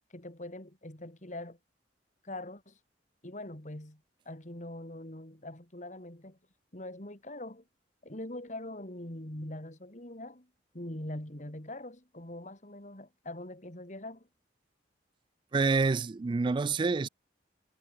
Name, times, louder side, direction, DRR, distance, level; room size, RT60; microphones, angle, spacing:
voice 1, 0.1-1.6 2.2-2.8 3.2-6.4 6.7-7.6 8.0-10.5 10.7-14.3, left 1 dB, 40° left, 2.9 m, -43 dB
voice 2, 15.5-17.1, right 4 dB, 25° right, 0.3 m, -27 dB
head